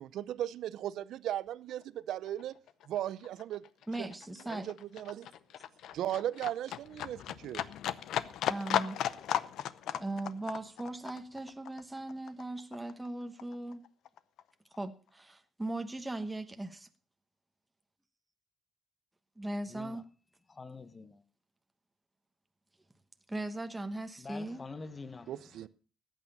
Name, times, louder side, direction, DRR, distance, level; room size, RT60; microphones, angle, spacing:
voice 1, 0.0-2.6 2.9-3.6 4.0-4.1 4.5-5.3 5.9-7.6 25.3-25.7, right 12 dB, 80° right, 0.6 m, -37 dB
Livestock farm animals working animals, 1.7-1.8 2.1-13.1 13.4-14.4 14.7-14.8, left 11 dB, 80° left, 0.6 m, -36 dB
voice 2, 3.9-4.7 8.5-9.1 9.9-13.8 14.8-16.9 19.4-20.0 23.3-24.6, right 2 dB, 10° right, 1.1 m, -39 dB
voice 3, 19.7-20.0 20.5-21.2 24.2-25.4, left 4 dB, 30° left, 1.0 m, -46 dB
14.5 x 9.1 x 5.4 m
cardioid pair, 90°, 0 cm